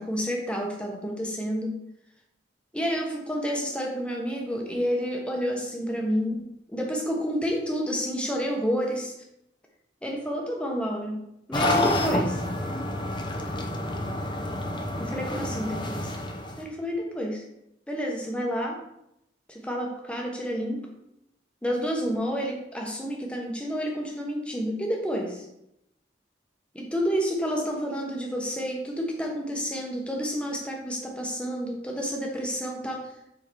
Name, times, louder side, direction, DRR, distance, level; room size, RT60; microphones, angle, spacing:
voice 1, 0.0-1.8 2.7-9.1 10.0-11.2 11.5-12.4 15.0-16.1 16.6-17.4 17.9-18.8 19.5-20.9 21.6-25.5 26.7-33.0, equal, 5° left, 0 dB, 1.1 m, -29 dB
sound 1, 11.5-16.6, left 1 dB, 25° left, 0.7 m, -28 dB
7.3 x 3.8 x 4.6 m, 0.81 s
head